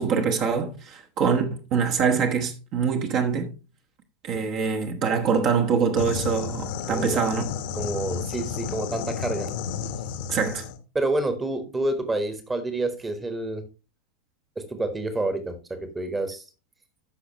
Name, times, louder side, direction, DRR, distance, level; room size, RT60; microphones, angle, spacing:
voice 1, 0.0-3.5 4.2-7.5 10.3-10.7, right 6 dB, 40° right, 1.2 m, -24 dB
sound 1, 6.0-10.8, left 7 dB, 50° left, 1.1 m, -32 dB
voice 2, 6.9-7.2 7.7-9.5 10.9-13.6 14.7-16.4, right 2 dB, 15° right, 1.3 m, -28 dB
13.5 x 5.9 x 3.0 m
figure-of-eight pair, 90°, 0 cm